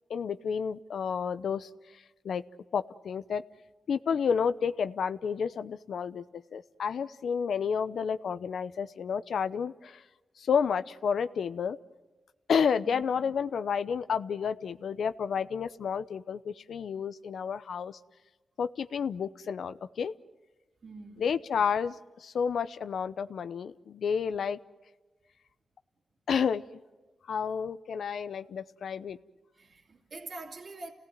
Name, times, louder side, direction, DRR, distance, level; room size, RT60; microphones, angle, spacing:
voice 1, 0.1-1.7 2.2-2.4 2.7-3.4 3.9-6.2 6.5-10.0 10.4-11.8 12.5-18.0 18.6-20.1 21.2-24.6 26.3-26.6 27.3-29.2, left 6 dB, 80° left, 0.8 m, -30 dB
voice 2, 20.8-21.3 29.5-30.9, right 3 dB, 55° right, 2.7 m, -44 dB
29.0 x 18.0 x 9.2 m
cardioid pair, 85°, 0 cm